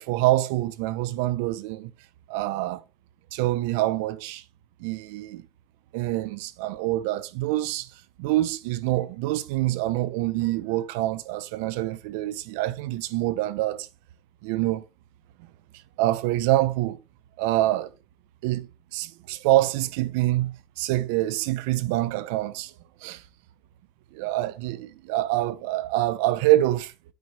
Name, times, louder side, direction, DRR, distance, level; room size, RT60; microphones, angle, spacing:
voice 1, 0.0-1.9 2.3-2.8 3.3-4.4 4.8-5.4 5.9-7.9 8.2-13.9 14.4-14.8 16.0-17.0 17.4-17.9 18.4-18.7 18.9-22.7 23.0-23.2 24.1-26.9, right 16 dB, 85° right, 0.7 m, -25 dB
9.3 x 8.2 x 3.3 m
supercardioid pair, 110°, 0 cm